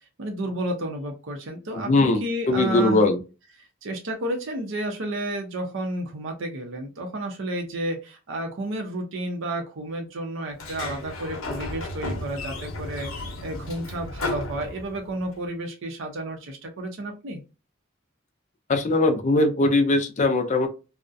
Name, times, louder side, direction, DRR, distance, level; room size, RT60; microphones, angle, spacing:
voice 1, 0.2-3.0 3.8-17.4, right 1 dB, 65° right, 3 dB, 0.6 m, -31 dB
voice 2, 1.7-3.2 18.7-20.7, left 2 dB, 35° left, 6 dB, 0.4 m, -21 dB
Sliding door, 10.5-15.3, left 2 dB, 90° left, 0.7 m, -34 dB
2.4 x 2.0 x 2.5 m, 0.30 s
head